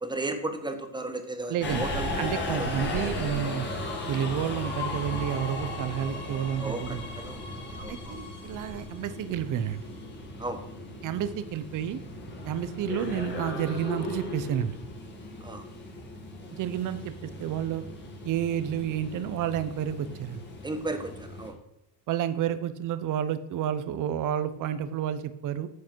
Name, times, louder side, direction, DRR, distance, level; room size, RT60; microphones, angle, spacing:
voice 1, 0.0-2.7 6.6-7.4 7.7-8.2 10.4-10.6 15.4-15.6 20.6-21.5, right 2 dB, 10° right, 7 dB, 1.0 m, -35 dB
voice 2, 1.5-1.9 2.2-3.7 4.1-7.0 7.9-9.8 11.0-12.0 12.4-14.8 16.5-17.8 18.2-20.4 22.1-25.7, right 10 dB, 45° right, 12 dB, 0.8 m, -30 dB
Subway metro underground, 1.6-21.5, left 2 dB, 25° left, 2.3 m, -36 dB
9.5 x 8.4 x 4.6 m, 0.89 s
cardioid pair, 165°, 43 cm